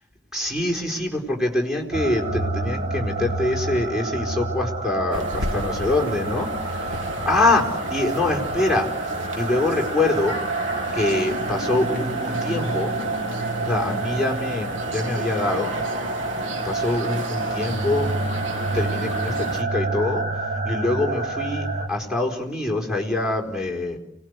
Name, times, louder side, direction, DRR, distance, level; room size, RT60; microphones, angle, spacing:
voice 1, 0.3-7.0 7.2-8.9 9.4-10.4 10.9-12.9 13.6-15.7 16.6-18.1 18.7-24.0, left 2 dB, ahead, -1 dB, 4.7 m, -24 dB
sound 1, 1.9-21.9, right 2 dB, 40° right, 3.0 m, -28 dB
sound 2, 5.1-19.6, right 1 dB, 75° right, 2.0 m, -33 dB
30.0 x 19.0 x 8.3 m, 0.78 s
head